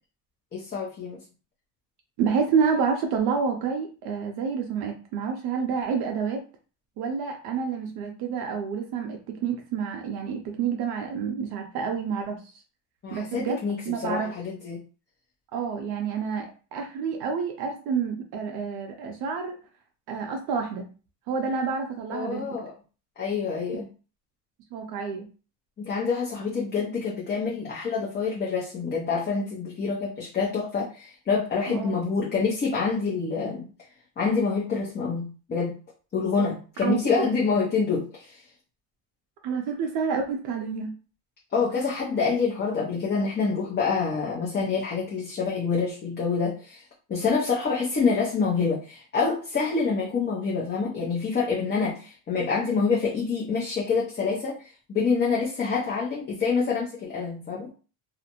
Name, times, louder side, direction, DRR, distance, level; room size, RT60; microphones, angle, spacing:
voice 1, 0.5-1.2 13.0-14.8 22.1-22.7 23.2-23.9 25.8-33.6 34.2-35.7 36.1-38.5 41.5-57.7, left 5 dB, 25° left, -4 dB, 0.7 m, -27 dB
voice 2, 2.2-6.4 7.0-12.6 13.1-13.6 13.9-14.4 15.5-19.6 20.1-20.8 21.3-22.5 24.7-25.3 31.7-31.9 36.8-37.3 39.4-40.9, right 6 dB, 60° right, 3 dB, 0.6 m, -28 dB
2.4 x 2.0 x 2.9 m, 0.36 s
supercardioid pair, 115°, 42 cm